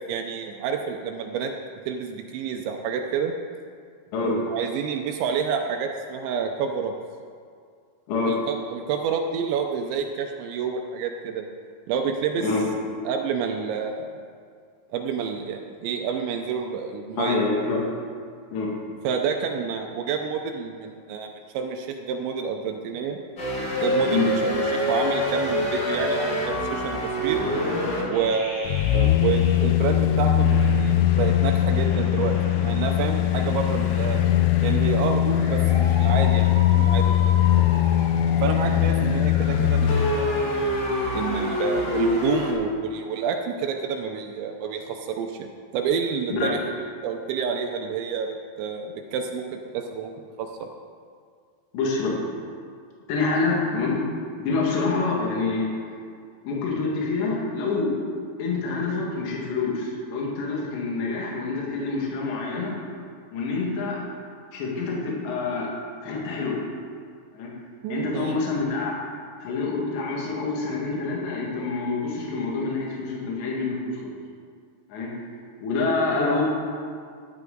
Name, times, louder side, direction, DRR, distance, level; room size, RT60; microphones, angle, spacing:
voice 1, 0.1-1.5 1.9-3.3 4.2-6.9 8.3-11.4 11.9-12.5 13.1-14.2 14.9-17.5 19.0-23.2 23.8-27.4 28.1-34.2 34.6-37.5 37.9-38.0 38.4-40.5 41.1-46.6 47.0-49.4 49.7-50.1 50.4-50.7 67.8-68.4, right 6 dB, 80° right, 4 dB, 2.9 m, -29 dB
voice 2, 17.2-17.8 18.5-18.7 24.1-24.3 46.4-46.6 51.7-52.1 53.1-54.0 54.4-55.7 56.4-58.0 58.4-62.8 63.3-64.0 64.5-65.7 66.0-66.6 67.3-67.5 67.9-68.9 69.4-74.1 74.9-75.1 75.6-76.4, left 3 dB, 70° left, -3 dB, 4.0 m, -26 dB
sound 1, 23.4-29.9 30.4-42.5, left 1 dB, 40° left, 1.4 m, -29 dB
sound 2, 28.6-40.2 40.6-40.7, left 11 dB, 85° left, 3.0 m, -21 dB
14.0 x 11.5 x 3.9 m, 2.2 s
omnidirectional pair, 5.4 m